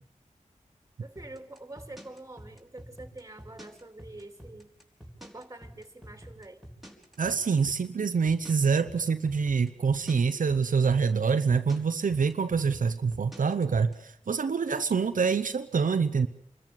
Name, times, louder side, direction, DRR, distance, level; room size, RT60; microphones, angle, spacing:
voice 1, 1.0-4.7 5.2-6.6, right 2 dB, 25° right, 9 dB, 2.9 m, -46 dB
sound 1, 1.2-13.9, equal, ahead, 4.5 m, -47 dB
voice 2, 7.2-16.3, right 5 dB, 85° right, 8 dB, 0.8 m, -26 dB
26.0 x 13.5 x 9.4 m, 0.76 s
cardioid pair, 50°, 13 cm